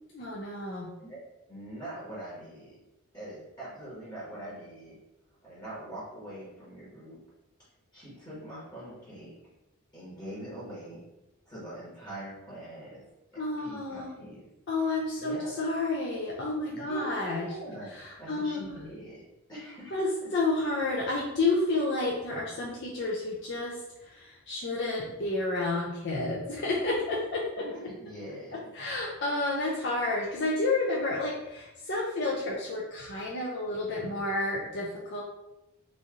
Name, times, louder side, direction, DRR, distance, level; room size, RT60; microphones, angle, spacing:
voice 1, 0.2-0.9 13.4-14.1 14.7-17.5 17.9-18.6 19.9-27.4 28.7-35.2, left 2 dB, 50° left, -4 dB, 0.5 m, -30 dB
voice 2, 1.5-2.8 3.1-5.0 5.4-7.2 7.9-9.3 9.9-11.0 11.4-14.5 15.2-15.5 16.7-17.9 18.2-19.2 19.5-20.3 27.6-28.7, right 1 dB, 20° left, -8 dB, 1.0 m, -43 dB
3.1 x 2.6 x 3.6 m, 0.96 s
head